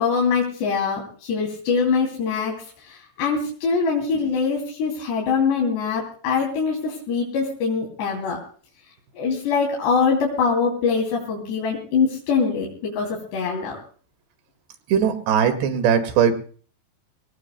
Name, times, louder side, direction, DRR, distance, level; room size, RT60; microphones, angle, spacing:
voice 1, 0.0-2.5 2.8-8.4 9.2-13.8, left 5 dB, 90° left, -1 dB, 5.2 m, -23 dB
voice 2, 14.9-16.3, right 8 dB, 85° right, 10 dB, 4.0 m, -19 dB
24.0 x 19.0 x 2.2 m, 0.43 s
omnidirectional pair, 4.8 m